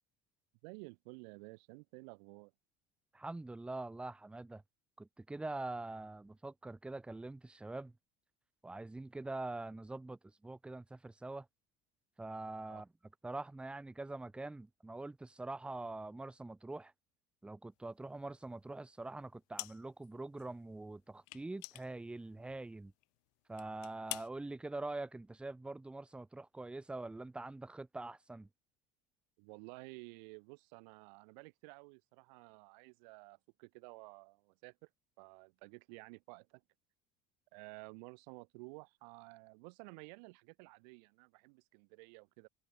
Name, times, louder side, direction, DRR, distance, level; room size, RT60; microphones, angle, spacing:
voice 1, 0.6-2.5 12.7-12.8 29.4-34.9 35.2-36.6 37.5-42.5, right 31 dB, 90° right, 2.2 m, -53 dB
voice 2, 3.1-4.6 5.0-7.9 8.6-11.5 12.2-12.9 13.2-16.9 17.4-22.9 23.5-28.5, right 2 dB, 5° right, 0.4 m, -44 dB
sound 1, 19.6-20.1 20.4-20.5 21.3-22.7 23.0-23.2 23.6-24.3, left 40 dB or more, 80° left, 1.5 m, -46 dB
cardioid pair, 135°, 21 cm